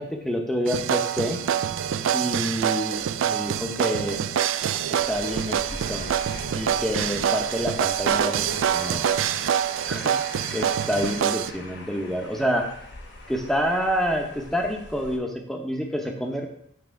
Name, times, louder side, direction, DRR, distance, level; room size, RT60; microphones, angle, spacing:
voice 1, 0.0-1.4 2.1-4.2 4.9-6.2 6.5-9.0 9.9-10.2 10.5-12.7 13.3-16.5, equal, ahead, 2 dB, 0.7 m, -28 dB
sound 1, 0.7-11.5, right 9 dB, 80° right, 0.3 m, -25 dB
sound 2, 5.0-15.2, left 2 dB, 55° left, 1.0 m, -42 dB
8.5 x 3.4 x 4.6 m, 0.70 s
head